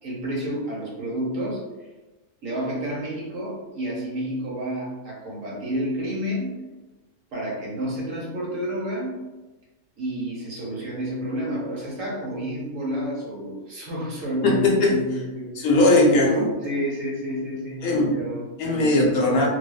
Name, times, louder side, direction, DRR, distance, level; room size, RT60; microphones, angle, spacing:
voice 1, 0.0-1.9 2.4-6.6 7.3-9.2 10.0-15.7 16.5-19.2, equal, 65° right, -5 dB, 1.2 m, -30 dB
voice 2, 14.4-15.0 15.6-16.6 17.8-18.2 18.6-19.5, left 2 dB, 75° left, -2 dB, 1.0 m, -19 dB
2.7 x 2.1 x 2.2 m, 1.1 s
omnidirectional pair, 1.5 m